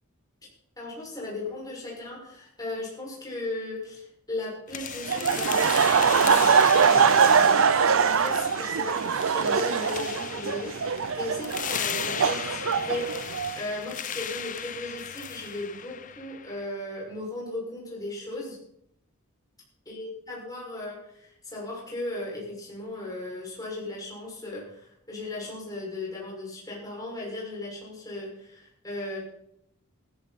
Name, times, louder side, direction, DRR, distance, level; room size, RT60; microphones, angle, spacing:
voice 1, 0.8-18.6 19.9-29.2, left 2 dB, 15° left, -4 dB, 5.9 m, -37 dB
sound 1, 4.7-16.7, left 9 dB, 40° left, 0.6 m, -36 dB
Laughter, 5.1-13.6, right 6 dB, 65° right, 0.6 m, -23 dB
15.5 x 14.0 x 4.2 m, 0.73 s
head